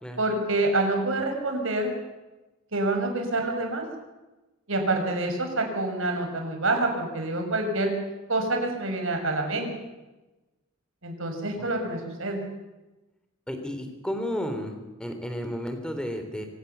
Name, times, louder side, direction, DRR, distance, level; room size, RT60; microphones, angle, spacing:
voice 1, 0.2-1.9 2.7-3.8 4.7-7.9 8.3-9.7 11.0-12.4, right 2 dB, 75° right, 4 dB, 5.8 m, -27 dB
voice 2, 13.5-14.7 15.0-16.5, equal, 5° left, 6 dB, 3.4 m, -32 dB
25.0 x 18.0 x 7.1 m, 1.1 s
head